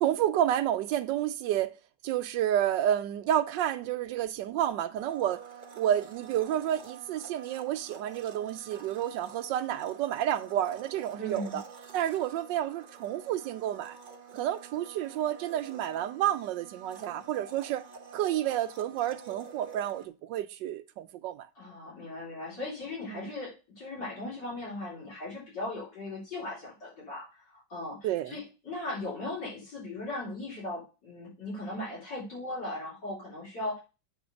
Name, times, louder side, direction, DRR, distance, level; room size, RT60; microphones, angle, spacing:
voice 1, 0.0-1.7 2.0-5.4 5.8-11.6 11.9-14.0 14.3-17.8 18.1-21.5 23.1-23.3 28.0-28.3, right 11 dB, 85° right, 1.3 m, -30 dB
Domestic sounds home sounds, 4.9-20.1, right 6 dB, 45° right, 0.6 m, -48 dB
voice 2, 11.2-11.6 21.6-33.8, left 2 dB, 80° left, 4.8 m, -38 dB
8.7 x 3.7 x 6.3 m
omnidirectional pair, 1.9 m